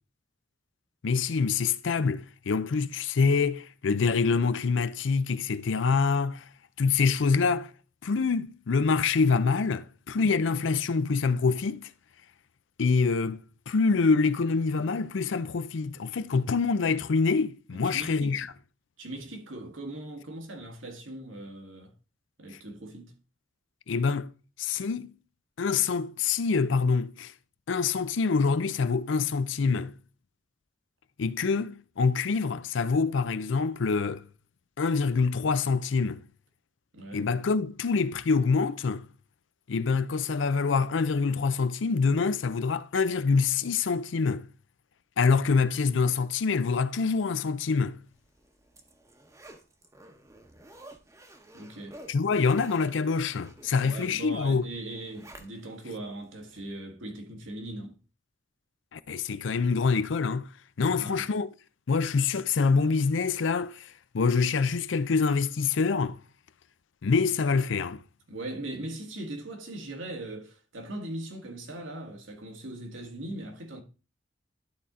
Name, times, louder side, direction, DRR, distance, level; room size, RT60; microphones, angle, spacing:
voice 1, 1.0-6.4 6.8-7.7 8.0-11.9 12.8-18.5 23.9-24.3 24.6-25.1 25.6-27.3 27.7-29.9 31.2-34.2 34.8-36.2 37.1-39.1 39.7-44.5 45.2-48.0 52.1-54.7 58.9-60.5 60.8-61.5 61.9-66.2 67.0-68.0, left 4 dB, 70° left, 0.5 m, -26 dB
voice 2, 17.8-18.4 19.0-21.9 22.4-23.2 36.9-37.3 51.5-52.0 53.8-58.0 60.9-61.2 68.3-73.8, right 1 dB, 85° right, 1.6 m, -40 dB
Zipper (clothing), 48.3-55.9 56.3-56.4, right 1 dB, 15° right, 0.9 m, -51 dB
11.5 x 4.2 x 3.7 m
head